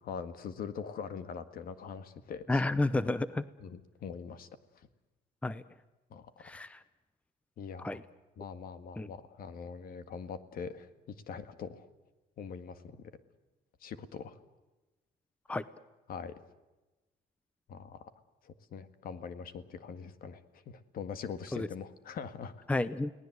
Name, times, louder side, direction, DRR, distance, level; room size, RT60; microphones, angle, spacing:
voice 1, 0.0-2.6 3.6-4.5 6.1-6.5 7.6-8.0 8.4-10.9 11.3-11.9 12.4-12.8 13.8-14.4 16.1-16.4 17.7-18.1 18.4-22.7, left 6 dB, 60° left, 11 dB, 1.8 m, -42 dB
voice 2, 2.5-3.4 5.4-5.6 6.4-6.8 7.8-8.0 9.0-9.1 15.5-15.6 21.5-21.7 22.7-23.1, left 2 dB, 5° left, 16 dB, 0.7 m, -31 dB
30.0 x 18.5 x 8.0 m, 1.1 s
cardioid pair, 110°, 17 cm